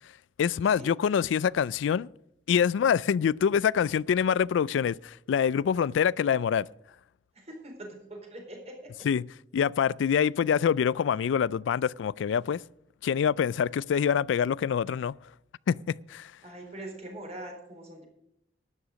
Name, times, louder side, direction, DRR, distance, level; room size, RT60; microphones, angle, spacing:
voice 1, 0.4-2.1 2.5-6.7 9.0-9.3 9.5-12.6 13.0-15.2 15.7-15.8 16.1-16.3, left 7 dB, 85° left, 0.3 m, -25 dB
voice 2, 7.3-9.1 16.4-18.0, right 1 dB, 35° right, 4.2 m, -43 dB
12.5 x 9.9 x 5.1 m
head